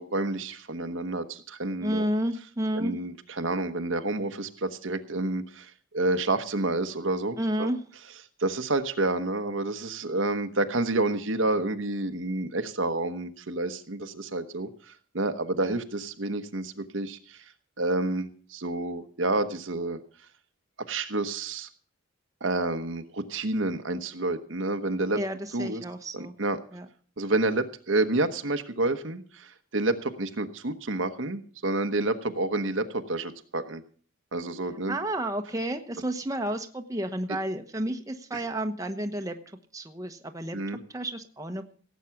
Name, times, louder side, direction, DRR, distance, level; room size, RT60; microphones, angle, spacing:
voice 1, 0.0-2.0 2.7-7.7 8.4-17.5 17.8-20.0 20.9-21.7 22.4-25.2 25.5-25.8 26.1-26.6 27.2-33.8 34.3-35.0 37.3-37.4 38.3-38.4 40.5-40.8, right 2 dB, 65° right, 8 dB, 1.1 m, -29 dB
voice 2, 1.8-2.9 7.4-7.8 15.6-15.7 25.1-26.3 26.7-26.8 34.9-39.4 39.7-40.6 40.9-41.7, right 1 dB, 15° right, 5 dB, 1.1 m, -31 dB
17.0 x 8.3 x 5.8 m, 0.44 s
head